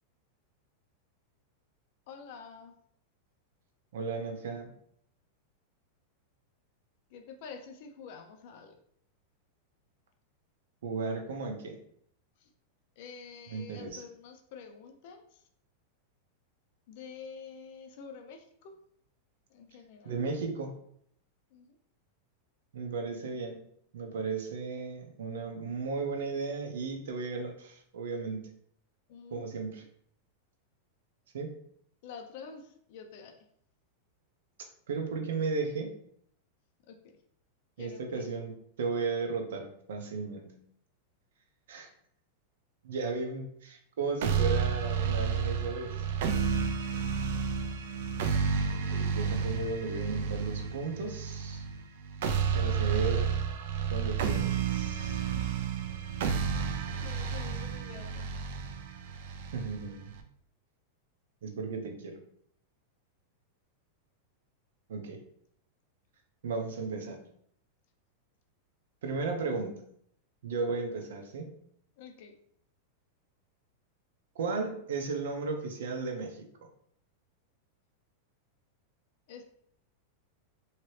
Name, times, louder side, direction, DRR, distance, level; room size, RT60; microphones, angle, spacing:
voice 1, 2.1-2.7 7.1-8.8 12.4-12.5 13.0-15.2 16.9-18.8 19.5-20.2 21.5-21.8 29.1-29.6 32.0-33.4 36.9-37.1 37.8-38.3 52.6-53.1 55.4-55.7 56.5-58.3 72.0-72.3 79.3-79.4, left 5 dB, 40° left, 5 dB, 0.4 m, -48 dB
voice 2, 3.9-4.7 10.8-11.8 13.5-14.0 20.0-20.8 22.7-23.6 23.9-28.5 29.3-29.8 31.3-31.5 34.9-35.9 37.8-40.6 41.7-41.9 42.8-45.9 48.7-51.6 52.5-53.3 53.9-55.2 59.5-60.1 61.4-62.2 64.9-65.2 66.4-67.2 69.0-69.8 70.4-71.5 74.3-76.5, right 4 dB, 80° right, 3 dB, 0.7 m, -35 dB
sound 1, 44.2-60.2, right 6 dB, 55° right, 0.4 m, -31 dB
2.9 x 2.8 x 3.1 m, 0.67 s
supercardioid pair, 180°, 0 cm